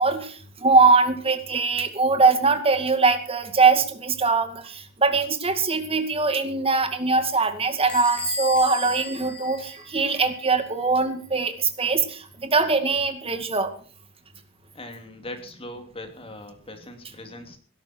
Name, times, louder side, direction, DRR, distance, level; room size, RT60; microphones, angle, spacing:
voice 1, 0.0-13.7, right 4 dB, 30° right, 8 dB, 2.1 m, -22 dB
Bell / Door, 7.9-10.4, left 1 dB, 5° left, 5.9 m, -33 dB
voice 2, 14.7-17.6, left 1 dB, 30° left, 5 dB, 3.0 m, -40 dB
17.5 x 13.0 x 4.5 m, 0.43 s
head